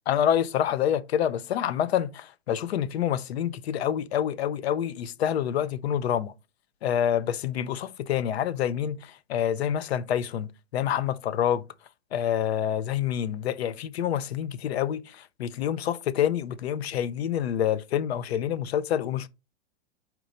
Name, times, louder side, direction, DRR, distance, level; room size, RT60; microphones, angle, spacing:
voice 1, 0.1-6.3 6.8-11.6 12.1-19.3, left 10 dB, 60° left, 0.7 m, -27 dB
5.2 x 4.5 x 4.1 m
supercardioid pair, 180°, 35 cm